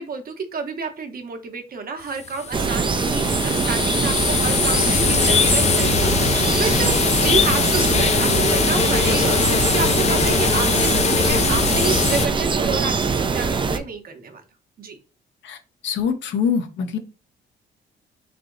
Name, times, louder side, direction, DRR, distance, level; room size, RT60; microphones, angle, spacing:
voice 1, 0.0-14.4 14.8-15.0, right 4 dB, 50° right, 6 dB, 0.9 m, -29 dB
sound 1, 2.2-12.3, left 6 dB, 35° left, 0.4 m, -21 dB
sound 2, 2.5-13.8, right 4 dB, 25° right, 0.4 m, -22 dB
voice 2, 15.8-17.0, left 6 dB, 70° left, 7 dB, 0.8 m, -24 dB
3.4 x 2.8 x 3.8 m, 0.33 s
cardioid pair, 90°, 20 cm